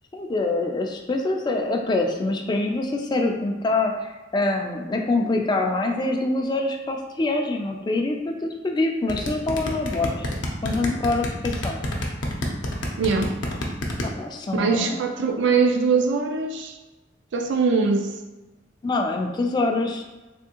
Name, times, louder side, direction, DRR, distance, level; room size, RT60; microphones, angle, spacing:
voice 1, 0.1-10.3 10.6-11.8 14.0-15.6 18.8-20.0, left 2 dB, 25° left, 2 dB, 0.3 m, -25 dB
sound 1, 9.1-14.1, left 1 dB, 75° left, 0.6 m, -27 dB
voice 2, 13.0-13.4 14.5-16.8 17.3-18.2, right 4 dB, 75° right, 4 dB, 0.4 m, -22 dB
3.4 x 2.6 x 2.8 m, 1.1 s
head